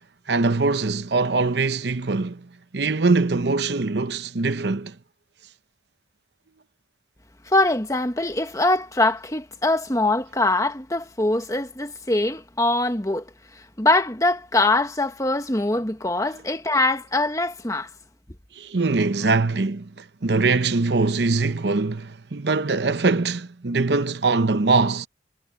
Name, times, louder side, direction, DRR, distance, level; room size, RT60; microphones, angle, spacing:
voice 1, 0.3-5.0 16.3-16.4 18.5-25.1, right 3 dB, 60° right, 0.8 m, -22 dB
voice 2, 7.5-13.2 13.8-17.9, left 2 dB, 15° left, 1.5 m, -23 dB
head